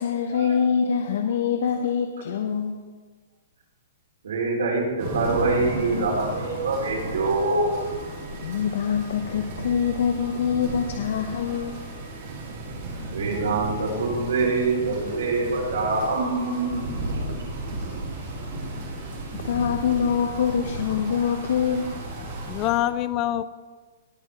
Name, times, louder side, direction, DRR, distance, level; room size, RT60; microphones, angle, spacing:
voice 1, 0.0-2.8 8.3-11.8 17.7-17.9 18.2-18.3 19.3-21.9, left 7 dB, 60° left, 5 dB, 0.8 m, -25 dB
voice 2, 4.2-7.7 13.1-16.8 17.1-17.3, right 3 dB, 85° right, -2 dB, 4.1 m, -25 dB
sound 1, 5.0-22.7, right 2 dB, 40° right, 3.2 m, -34 dB
voice 3, 22.2-23.4, left 13 dB, 20° left, 15 dB, 0.4 m, -25 dB
19.0 x 7.5 x 3.5 m, 1.4 s
hypercardioid pair, 170°, 0 cm